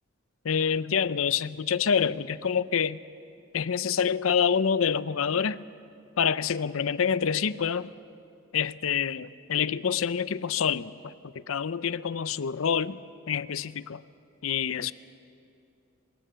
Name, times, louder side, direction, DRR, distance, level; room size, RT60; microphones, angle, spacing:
voice 1, 0.4-3.0 3.5-5.6 6.2-7.9 8.5-13.0 13.3-14.0 14.4-14.9, left 7 dB, 85° left, 16 dB, 0.6 m, -27 dB
24.0 x 21.5 x 6.9 m, 2.6 s
head